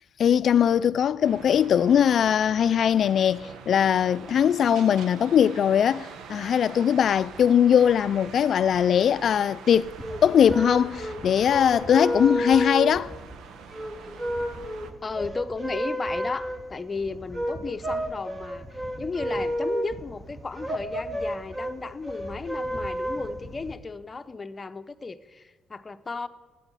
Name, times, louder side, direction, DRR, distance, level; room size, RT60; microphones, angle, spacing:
voice 1, 0.2-9.9 10.2-13.1, left 8 dB, 60° left, 0.5 m, -21 dB
sound 1, 1.2-14.9, right 6 dB, 80° right, 1.1 m, -44 dB
sound 2, 9.8-23.7, equal, 20° right, 2.1 m, -32 dB
voice 2, 15.0-18.7 19.0-26.3, left 4 dB, 30° left, 0.9 m, -34 dB
14.0 x 9.2 x 9.7 m
cardioid pair, 90°, 0 cm